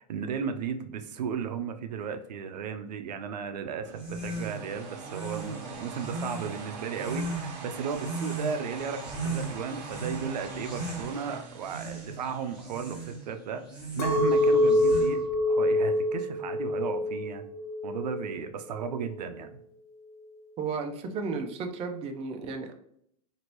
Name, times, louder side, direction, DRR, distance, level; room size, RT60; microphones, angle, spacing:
voice 1, 0.0-13.6 13.9-15.2 15.5-17.5 17.8-19.5, right 6 dB, 90° right, 8 dB, 0.4 m, -35 dB
sound 1, 3.8-13.1, right 4 dB, 50° right, 0.8 m, -44 dB
sound 2, 3.9-15.4, right 2 dB, 5° right, 1.1 m, -38 dB
Chink clink, 14.0-18.3 18.7-19.3, left 1 dB, 60° left, 0.6 m, -26 dB
voice 2, 20.6-22.7, right 4 dB, 30° right, 5 dB, 0.5 m, -33 dB
2.8 x 2.6 x 3.0 m, 0.70 s
hypercardioid pair, 115°, 21 cm